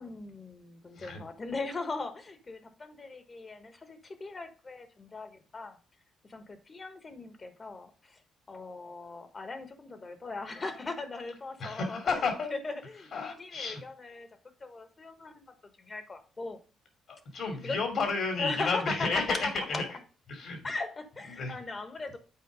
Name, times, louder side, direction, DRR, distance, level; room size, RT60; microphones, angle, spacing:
voice 1, 0.0-5.8 6.2-8.2 8.5-12.2 12.5-14.3 14.6-16.6 17.6-17.8 18.4-19.8 20.6-22.2, left 3 dB, 30° left, 9 dB, 1.4 m, -39 dB
voice 2, 11.6-12.5 13.1-13.8 17.1-19.8 20.3-20.6 21.3-21.5, left 4 dB, 60° left, 5 dB, 2.8 m, -31 dB
7.8 x 4.5 x 5.0 m, 0.37 s
cardioid pair, 90°, 0 cm